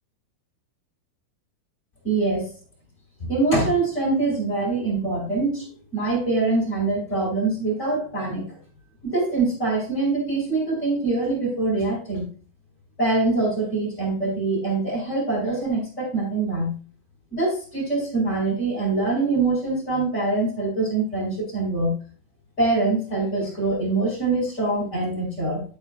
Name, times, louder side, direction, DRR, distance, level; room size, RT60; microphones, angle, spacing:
voice 1, 2.0-2.4 3.2-5.6 5.9-8.4 9.0-12.3 13.0-16.7 17.3-21.9 22.6-25.6, right 3 dB, 15° left, -4 dB, 4.5 m, -24 dB
11.0 x 8.7 x 2.3 m, 0.38 s
omnidirectional pair, 5.8 m